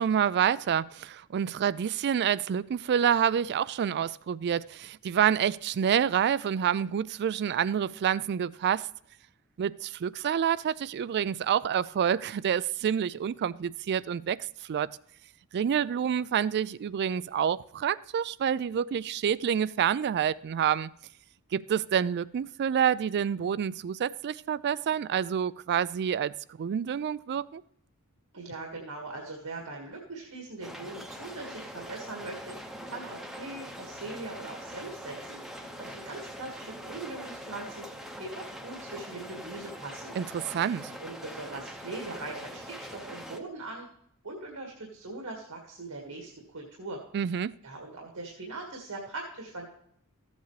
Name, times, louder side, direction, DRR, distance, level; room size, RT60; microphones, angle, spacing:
voice 1, 0.0-8.9 9.6-14.9 15.5-20.9 21.5-27.6 40.2-40.9 47.1-47.6, right 8 dB, 50° right, 0.3 m, -28 dB
voice 2, 28.3-32.6 32.9-35.4 35.8-40.1 41.0-43.9 44.2-47.0 47.6-49.7, right 2 dB, 80° right, 1.9 m, -41 dB
sound 1, 30.6-43.4, equal, ahead, 0.8 m, -43 dB
14.5 x 8.0 x 3.2 m
head